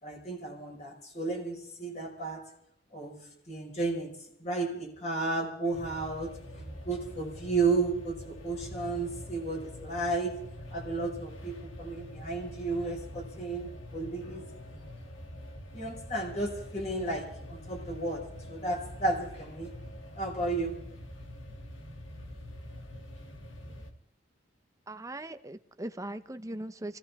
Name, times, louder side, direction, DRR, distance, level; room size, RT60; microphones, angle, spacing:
voice 1, 0.0-2.5 2.9-3.2 3.5-4.1 4.4-10.4 10.7-14.4 15.7-19.7 20.2-20.8, right 3 dB, 35° left, 0 dB, 5.4 m, -33 dB
sound 1, 5.7-23.9, left 1 dB, 80° left, 2.6 m, -45 dB
voice 2, 24.9-27.0, right 1 dB, 15° right, 10 dB, 0.9 m, -39 dB
24.0 x 17.0 x 3.6 m, 0.73 s
head